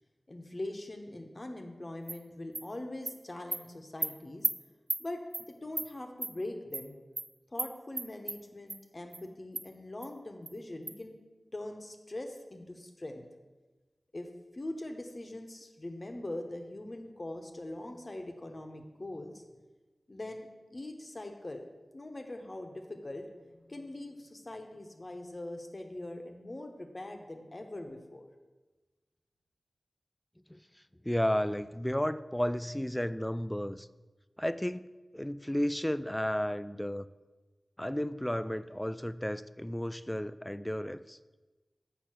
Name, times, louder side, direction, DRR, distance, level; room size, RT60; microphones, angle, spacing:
voice 1, 0.3-4.5 5.0-5.2 5.5-6.9 7.5-11.2 11.5-13.2 14.1-14.3 14.5-19.4 20.1-21.7 21.9-28.3, left 1 dB, 45° left, 4 dB, 0.9 m, -42 dB
Animal, 2.1-2.2 2.5-2.6 3.1-3.2 3.5-3.6 4.0-4.1 4.4-4.5 4.9-5.0 5.3-5.4 5.8-5.9 6.2-6.3 6.7-6.8 7.2-7.3 7.6-7.7 8.0-8.4 8.7-8.8 9.1-9.2 9.5-9.6 10.0-10.1 10.5-10.6 10.9-11.0, right 3 dB, 65° right, 0.5 m, -33 dB
voice 2, 30.5-33.9 34.4-34.9 35.1-37.1 37.8-41.2, equal, 10° left, 15 dB, 0.3 m, -33 dB
6.5 x 5.1 x 6.1 m, 1.2 s
cardioid pair, 45°, 0 cm